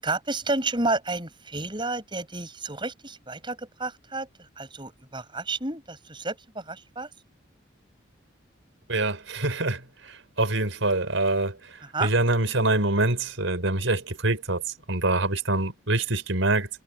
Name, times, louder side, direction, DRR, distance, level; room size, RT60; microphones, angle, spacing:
voice 1, 0.0-7.1 11.8-12.1, right 2 dB, 25° right, 7.8 m, -31 dB
voice 2, 8.9-14.6 14.9-16.7, right 2 dB, 90° right, 4.9 m, -25 dB
head